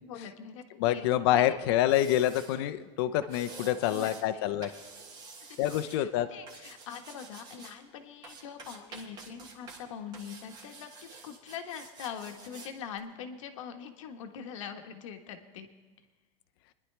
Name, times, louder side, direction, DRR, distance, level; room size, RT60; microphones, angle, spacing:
voice 1, 0.0-1.6 3.9-4.4 5.8-15.7, left 7 dB, 85° left, 5 dB, 1.3 m, -43 dB
voice 2, 0.8-4.7 5.6-6.3, left 12 dB, 55° left, 11 dB, 0.7 m, -27 dB
sound 1, 1.8-2.6 3.2-4.2 4.6-6.0 6.5-7.8 8.2-9.8 10.1-12.7 13.0-13.1, right 4 dB, 25° right, 1.4 m, -49 dB
25.0 x 10.5 x 3.3 m, 1.4 s
supercardioid pair, 170°, 16 cm